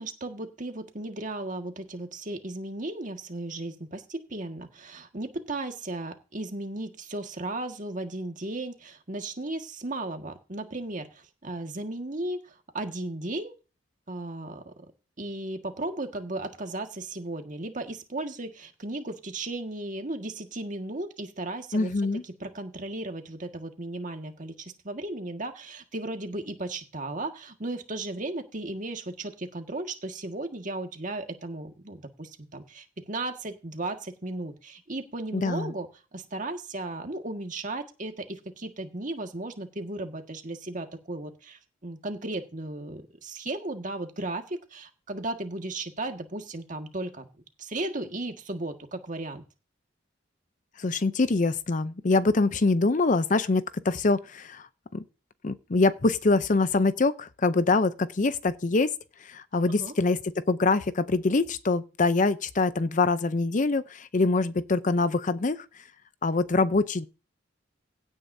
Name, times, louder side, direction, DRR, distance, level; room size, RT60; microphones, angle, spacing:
voice 1, 0.0-13.6 14.1-14.7 15.2-35.9 36.1-47.3 47.6-49.4 59.7-59.9, right 2 dB, 40° right, 1.7 m, -35 dB
voice 2, 21.7-22.2 35.3-35.7 50.8-54.7 54.9-55.0 55.4-58.9 59.2-60.2 60.5-65.7 66.2-67.1, left 3 dB, 40° left, 0.6 m, -24 dB
16.5 x 8.9 x 2.7 m
head